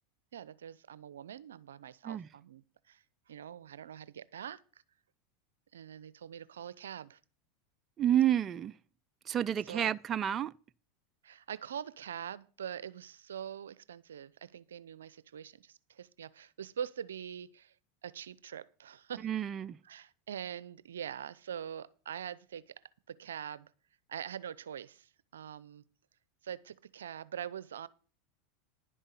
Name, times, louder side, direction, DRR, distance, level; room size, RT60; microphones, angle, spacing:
voice 1, 0.3-4.6 5.7-7.2 9.6-9.9 11.2-17.7 18.0-19.3 19.8-23.7 24.1-25.8 26.4-27.9, right 9 dB, 85° right, 0.5 m, -44 dB
voice 2, 8.0-8.7 9.3-10.5 19.2-19.8, right 10 dB, 35° right, 0.5 m, -30 dB
11.0 x 5.5 x 8.2 m
hypercardioid pair, 100°, 0 cm